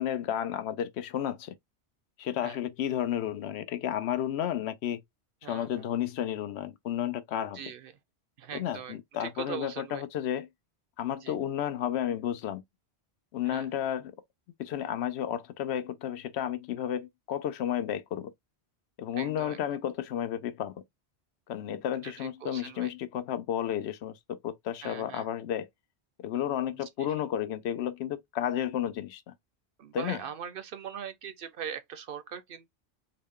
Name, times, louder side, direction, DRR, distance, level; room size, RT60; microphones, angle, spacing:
voice 1, 0.0-1.5 2.2-5.0 5.4-7.6 8.5-10.5 11.0-12.6 13.3-14.1 14.6-18.3 19.0-20.8 21.5-25.7 26.2-29.3 29.9-30.2, left 10 dB, 75° left, 0.8 m, -32 dB
voice 2, 5.4-5.9 7.5-7.9 8.4-10.0 11.2-11.4 13.4-13.7 19.1-19.6 22.0-22.9 24.8-25.3 27.0-27.2 29.8-32.7, right 8 dB, 65° right, 0.7 m, -41 dB
3.9 x 2.1 x 3.5 m
omnidirectional pair, 1.1 m